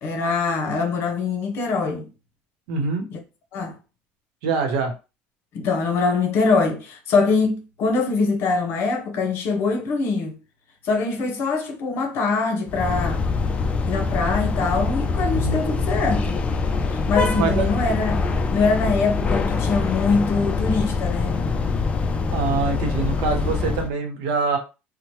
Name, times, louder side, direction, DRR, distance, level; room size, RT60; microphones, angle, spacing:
voice 1, 0.0-2.1 3.1-3.2 3.5-3.7 5.5-10.4 10.8-13.2 13.9-16.4 16.9-18.3 18.5-21.4, left 4 dB, 55° left, 0.7 m, -23 dB
voice 2, 2.7-3.1 4.4-4.9 15.3-15.6 17.4-17.7 22.3-24.6, right 4 dB, 85° right, 0.8 m, -24 dB
sound 1, 12.7-23.9, left 4 dB, 25° left, 0.3 m, -24 dB
2.8 x 2.1 x 3.0 m
cardioid pair, 120°, 5 cm